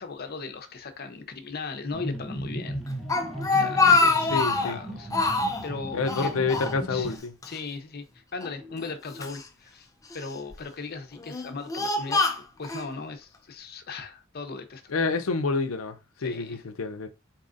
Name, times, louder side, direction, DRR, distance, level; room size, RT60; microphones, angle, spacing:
voice 1, 0.0-2.8 3.5-5.1 5.6-6.4 6.9-7.1 7.4-9.9 10.1-12.2 12.6-14.8 16.2-16.6, left 4 dB, 50° left, 0.7 m, -37 dB
sound 1, 1.9-7.2, right 1 dB, ahead, 0.9 m, -37 dB
Speech, 2.9-4.8 5.1-5.7 6.1-7.2 7.4-7.6 8.4-9.4 10.1-10.5 11.2-12.9, left 3 dB, 15° left, 0.4 m, -25 dB
voice 2, 4.3-4.8 5.9-7.3 14.9-17.1, left 4 dB, 85° left, 0.5 m, -28 dB
4.1 x 3.9 x 2.5 m
head